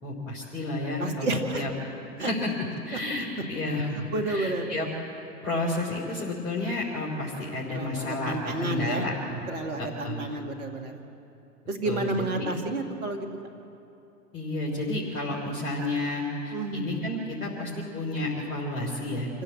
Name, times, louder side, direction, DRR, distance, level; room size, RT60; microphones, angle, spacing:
voice 1, 0.0-1.7 2.2-4.9 5.4-9.4 9.8-10.3 11.8-12.1 12.4-12.5 14.3-19.4, left 2 dB, 55° left, -4 dB, 4.2 m, -31 dB
voice 2, 1.0-1.6 2.2-2.3 3.9-4.7 7.7-9.0 9.5-11.0 11.7-13.3 16.5-16.9 19.3-19.4, right 2 dB, 65° right, 3 dB, 2.4 m, -30 dB
26.5 x 16.0 x 8.0 m, 2.7 s
figure-of-eight pair, 95°, 47 cm